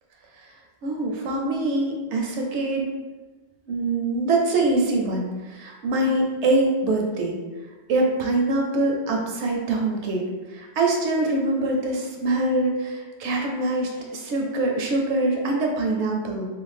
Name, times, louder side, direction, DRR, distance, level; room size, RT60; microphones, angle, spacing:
voice 1, 0.8-2.9 3.7-7.3 7.9-10.2 10.5-16.5, right 2 dB, 85° right, 0 dB, 0.9 m, -24 dB
2.5 x 2.1 x 3.1 m, 1.2 s
omnidirectional pair, 1.2 m